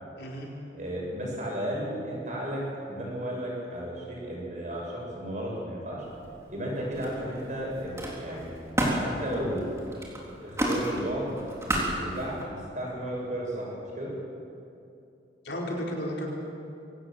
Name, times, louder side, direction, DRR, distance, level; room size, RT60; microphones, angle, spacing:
voice 1, 0.2-0.5 15.4-16.3, equal, 65° left, -2 dB, 4.5 m, -33 dB
voice 2, 0.7-2.6 2.9-6.1 6.5-8.5 9.0-9.7 10.4-11.3 11.5-14.1, equal, 40° right, -3 dB, 7.8 m, -34 dB
Camera, 6.0-6.6 6.9-12.4, right 1 dB, 15° right, 3.6 m, -32 dB
24.5 x 18.5 x 7.8 m, 2.7 s
head